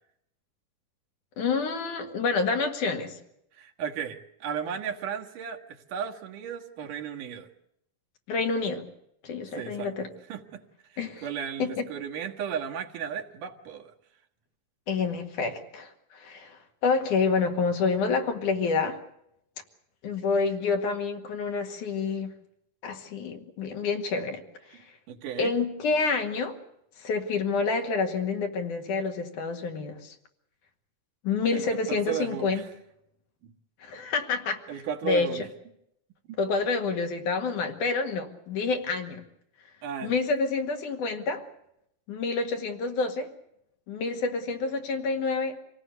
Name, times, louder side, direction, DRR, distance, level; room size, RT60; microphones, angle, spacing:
voice 1, 1.4-3.1 8.3-8.8 9.2-10.1 11.0-11.2 11.6-11.8 14.9-19.0 20.0-22.3 22.8-24.4 25.4-26.6 27.0-30.1 31.2-32.6 33.8-34.6 35.0-35.3 36.4-39.2 40.0-41.4 42.1-43.3 43.9-45.6, left 4 dB, 75° left, 5 dB, 3.5 m, -28 dB
voice 2, 3.5-7.5 9.6-9.9 10.3-10.6 11.2-13.9 25.1-25.5 31.5-32.7 34.7-35.5 36.3-36.4 39.8-40.2, right 8 dB, 80° right, 2 dB, 3.1 m, -35 dB
26.0 x 18.0 x 8.2 m, 0.77 s
omnidirectional pair, 3.7 m